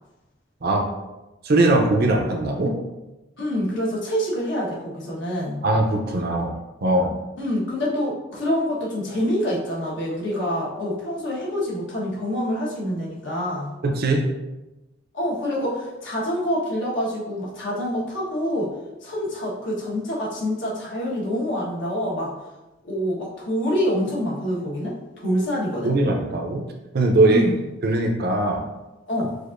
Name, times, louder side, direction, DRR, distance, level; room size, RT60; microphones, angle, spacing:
voice 1, 1.4-2.8 5.6-7.1 13.8-14.3 25.8-26.6 26.9-27.4 27.8-28.7, right 2 dB, 55° right, 2 dB, 0.6 m, -20 dB
voice 2, 3.4-5.6 7.4-13.7 15.1-18.7 19.0-22.3 22.8-25.9 27.3-27.6 29.1-29.3, equal, 65° left, -5 dB, 1.3 m, -26 dB
6.4 x 2.5 x 2.5 m, 1.0 s
head